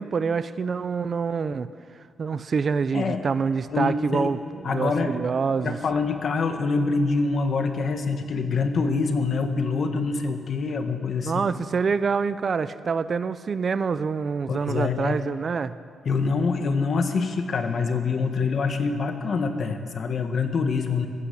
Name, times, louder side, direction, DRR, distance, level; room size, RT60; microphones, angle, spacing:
voice 1, 0.0-1.7 2.2-5.8 11.2-15.7, right 5 dB, 35° right, 13 dB, 0.6 m, -26 dB
voice 2, 3.7-4.3 4.6-5.2 5.6-11.3 14.5-15.3 16.1-21.1, left 4 dB, 45° left, 6 dB, 1.7 m, -25 dB
21.5 x 15.5 x 8.5 m, 2.2 s
wide cardioid pair, 150°, 0 cm